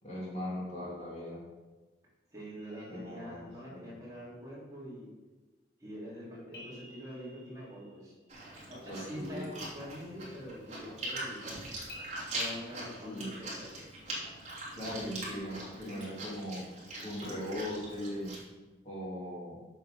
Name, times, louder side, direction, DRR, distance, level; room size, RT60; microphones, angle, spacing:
voice 1, 0.0-1.4 2.9-3.9 8.7-9.5 13.0-13.3 14.8-16.6 17.0-18.3 18.8-19.6, left 1 dB, 40° left, -6 dB, 2.6 m, -39 dB
voice 2, 2.3-5.1 5.8-8.1 8.7-11.7 12.3-13.8, equal, 20° right, -8 dB, 3.5 m, -45 dB
sound 1, 2.6-3.9 6.5-8.5 11.9-12.2, left 1 dB, 60° left, 2.0 m, -53 dB
Chewing mastication, 8.3-18.4, right 1 dB, 35° right, 2.9 m, -42 dB
8.0 x 7.0 x 5.1 m, 1.2 s
head